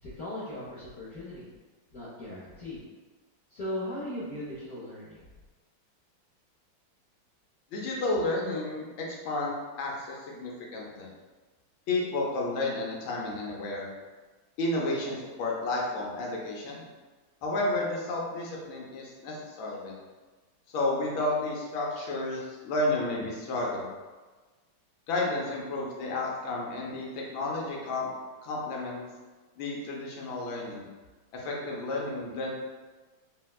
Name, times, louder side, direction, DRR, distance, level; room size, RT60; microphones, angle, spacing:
voice 1, 0.0-1.5 1.9-2.8 3.5-5.2, left 1 dB, 60° left, -9 dB, 1.0 m, -38 dB
voice 2, 7.7-11.1 11.9-13.9 14.6-16.8 17.4-20.0 20.7-23.9 25.1-28.1 28.4-29.0 29.6-30.8 31.3-32.5, left 2 dB, 80° left, -2 dB, 1.4 m, -31 dB
4.2 x 2.1 x 2.2 m, 1.3 s
omnidirectional pair, 2.1 m